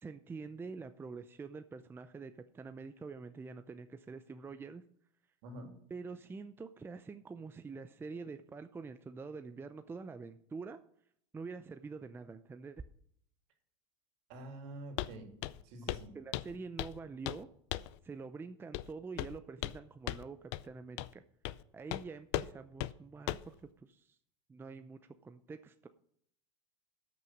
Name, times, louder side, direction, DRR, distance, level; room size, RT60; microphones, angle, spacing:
voice 1, 0.0-4.8 5.9-10.8 11.3-12.8 15.9-17.5 18.0-21.2 21.7-24.2 24.5-25.9, right 4 dB, 15° right, 10 dB, 0.6 m, -46 dB
voice 2, 14.3-15.3 15.6-16.1, right 1 dB, 60° right, 4 dB, 3.1 m, -47 dB
Walk footsteps, 15.0-15.2 15.4-15.6 15.9-16.1 16.3-17.0 17.3-17.4 17.7-18.0 18.7-18.9 19.2-19.8 20.1-20.2 20.5-20.6 21.0-21.1 21.5-21.6 21.9-22.0 22.3-22.5 22.8-22.9 23.3-23.5, left 16 dB, 60° left, 0.5 m, -37 dB
13.0 x 6.2 x 6.3 m, 0.67 s
supercardioid pair, 110°, 16 cm